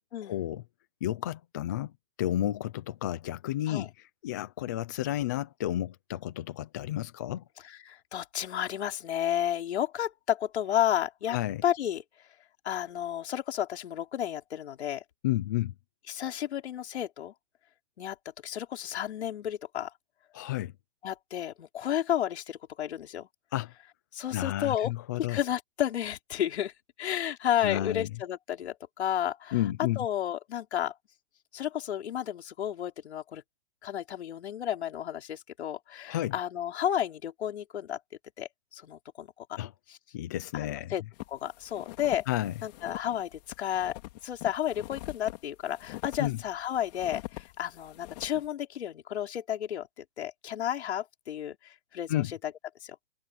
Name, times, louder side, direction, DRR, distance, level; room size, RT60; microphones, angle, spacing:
voice 1, 0.2-0.6 1.0-1.9 2.2-7.4 11.3-11.6 15.2-15.7 20.3-20.7 23.5-23.7 24.3-25.4 27.6-28.1 29.5-30.1 36.1-36.4 39.6-39.7 40.1-40.9 42.3-42.5 46.2-46.4 52.1-52.3, left 13 dB, 15° left, 0.5 m, -31 dB
voice 2, 7.7-11.4 11.6-12.0 12.6-15.0 16.1-17.3 18.0-18.2 18.4-19.9 21.0-23.3 24.1-24.9 25.3-26.7 27.0-29.6 30.0-30.9 31.5-33.4 33.8-38.0 38.4-39.6 39.9-40.0 40.5-41.0 41.3-42.3 42.6-44.0 44.2-49.9 50.2-52.2 52.8-52.9, left 10 dB, 60° left, 4.6 m, -32 dB
Close-micd Snow Steps, 41.1-48.5, left 19 dB, 35° left, 3.5 m, -44 dB
hypercardioid pair, 165°, 37 cm